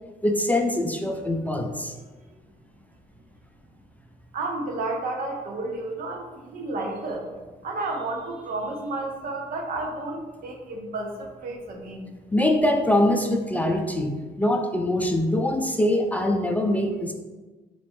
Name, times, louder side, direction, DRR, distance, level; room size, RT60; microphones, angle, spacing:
voice 1, 0.2-1.9 12.3-17.1, left 1 dB, 10° left, 3 dB, 0.4 m, -23 dB
voice 2, 4.3-7.3 7.6-12.1, right 2 dB, 65° right, 2 dB, 0.8 m, -31 dB
4.2 x 2.9 x 3.1 m, 1.2 s
cardioid pair, 90°, 16 cm